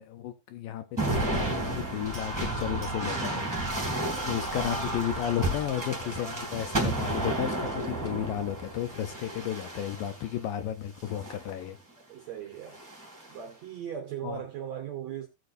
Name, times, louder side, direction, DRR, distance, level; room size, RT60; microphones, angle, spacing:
voice 1, 0.0-3.5 3.8-11.8 14.2-14.4, left 11 dB, 75° left, 2.2 m, -33 dB
sound 1, 1.0-10.3 11.0-11.6 12.7-13.3, right 2 dB, 5° right, 2.1 m, -32 dB
sound 2, 2.6-6.0, left 6 dB, 55° left, 2.0 m, -52 dB
voice 2, 12.1-12.8 13.3-15.3, right 9 dB, 75° right, 1.7 m, -38 dB
17.5 x 6.8 x 2.6 m
omnidirectional pair, 4.5 m